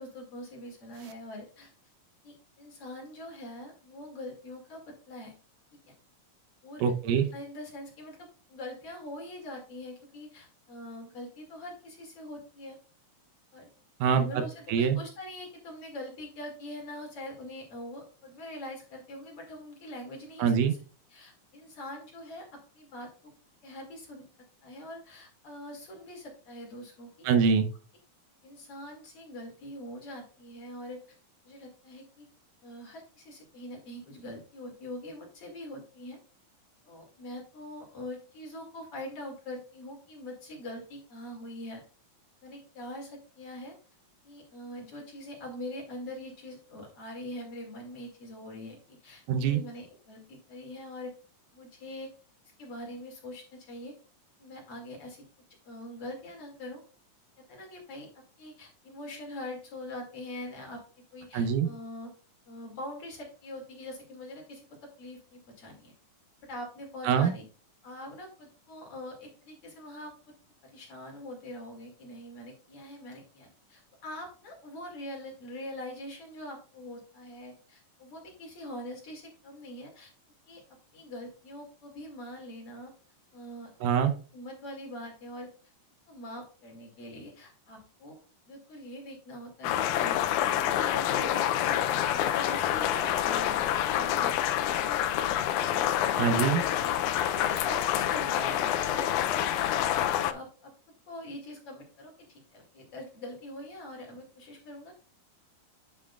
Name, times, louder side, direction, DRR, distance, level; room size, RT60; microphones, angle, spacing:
voice 1, 0.0-1.7 2.2-5.3 5.9-6.0 6.6-6.9 7.3-12.8 13.5-13.7 14.1-20.8 21.1-23.3 23.6-24.2 24.6-27.3 28.4-31.2 31.4-32.3 32.6-36.2 36.8-41.8 42.4-43.8 44.2-51.1 51.5-52.1 52.6-53.9 54.4-55.2 55.6-56.8 57.4-60.8 61.1-62.1 62.5-64.6 65.0-65.9 66.4-67.4 67.8-70.1 70.6-80.1 80.5-80.6 80.9-82.9 83.3-83.7 84.3-85.5 86.1-88.2 88.5-90.2 90.6-96.4 97.2-100.7 101.1-104.9, left 1 dB, 45° left, 0 dB, 3.0 m, -43 dB
voice 2, 6.8-7.3 14.0-14.4 14.7-15.0 20.4-20.7 27.2-27.7 49.3-49.6 61.3-61.7 67.0-67.3 83.8-84.1 96.2-96.6, right 7 dB, 80° right, 8 dB, 2.4 m, -24 dB
sound 1, 89.6-100.3, left 11 dB, 80° left, 1.7 m, -27 dB
9.7 x 6.3 x 2.3 m, 0.38 s
omnidirectional pair, 3.8 m